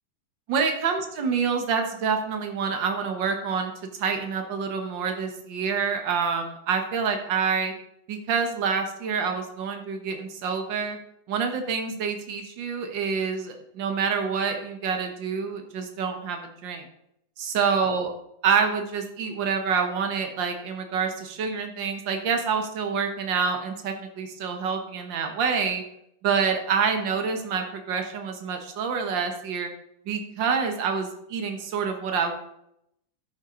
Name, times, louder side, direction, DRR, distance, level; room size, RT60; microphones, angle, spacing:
voice 1, 0.5-3.7 4.0-7.7 8.1-11.0 11.3-16.9 17.4-18.1 18.4-25.8 26.2-29.7 30.1-32.4, right 6 dB, 60° right, 5 dB, 1.2 m, -27 dB
11.5 x 8.2 x 3.9 m, 0.76 s
omnidirectional pair, 3.8 m